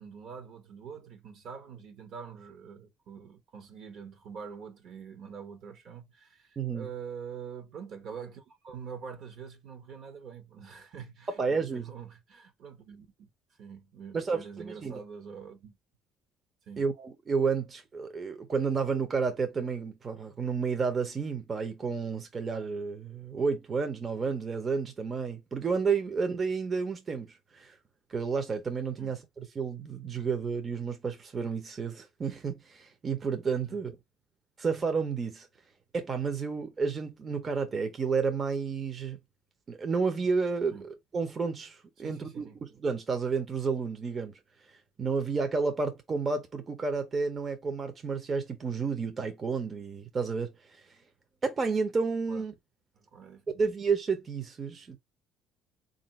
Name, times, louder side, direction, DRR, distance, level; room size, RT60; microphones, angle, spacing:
voice 1, 0.0-13.3 13.6-15.7 16.7-16.9 29.0-29.1 33.7-33.8 40.7-40.8 42.0-42.6 52.3-52.4 52.9-53.4, right 6 dB, 60° right, 1.0 m, -45 dB
voice 2, 6.6-6.9 11.4-11.9 14.1-14.4 14.8-15.0 16.8-27.8 28.1-34.0 34.6-35.5 35.9-39.2 39.7-44.4 45.0-50.8 51.4-52.5 53.6-55.0, right 5 dB, 35° right, 0.7 m, -31 dB
3.7 x 2.6 x 3.1 m
supercardioid pair, 75°, 0 cm